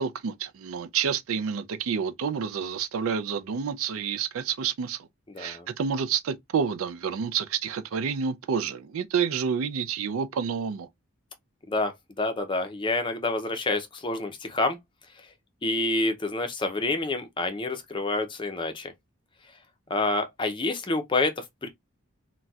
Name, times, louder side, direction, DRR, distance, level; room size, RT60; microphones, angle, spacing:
voice 1, 0.0-5.1 5.4-10.9, right 6 dB, 75° right, 0.4 m, -29 dB
voice 2, 5.3-5.7 11.7-11.9 12.2-14.8 15.6-18.9 19.9-21.7, left 2 dB, 25° left, 0.5 m, -28 dB
4.0 x 2.2 x 2.3 m
head